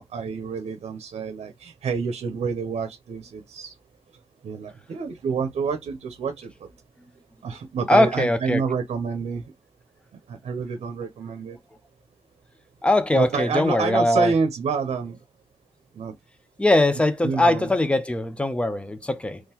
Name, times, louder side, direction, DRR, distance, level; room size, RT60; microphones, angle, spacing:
voice 1, 0.0-3.7 4.4-6.5 7.4-9.4 10.3-11.6 13.1-15.2 16.0-16.1 17.2-17.7, right 5 dB, 85° right, 0.7 m, -28 dB
voice 2, 7.9-8.6 12.8-14.3 16.6-19.4, left 1 dB, 10° left, 0.6 m, -21 dB
3.7 x 3.0 x 2.9 m
wide cardioid pair, 105°, 11 cm